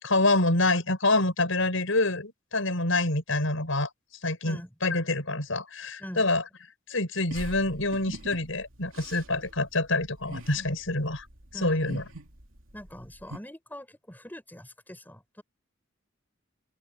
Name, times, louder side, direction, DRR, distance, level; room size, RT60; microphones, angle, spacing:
voice 1, 0.0-3.9 4.2-6.4 6.9-11.3 11.6-12.0, left 2 dB, 80° left, 6.2 m, -26 dB
voice 2, 4.4-4.7 6.0-6.4 11.5-12.0 12.7-15.4, equal, 10° left, 7.2 m, -43 dB
sound 1, 7.3-13.4, right 1 dB, 80° right, 3.1 m, -43 dB
open air
head